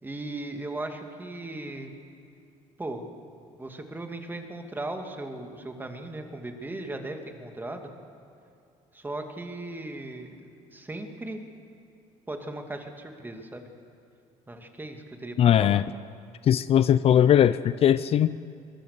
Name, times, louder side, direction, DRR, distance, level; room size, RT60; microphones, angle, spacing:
voice 1, 0.0-1.9 2.8-3.1 3.6-7.9 8.9-10.3 10.7-11.4 12.3-13.7 14.5-15.8, right 2 dB, 15° right, 4 dB, 2.4 m, -37 dB
voice 2, 15.4-15.9 16.4-18.4, left 10 dB, 50° left, 15 dB, 0.5 m, -20 dB
23.5 x 20.5 x 6.8 m, 2.4 s
cardioid pair, 105°, 13 cm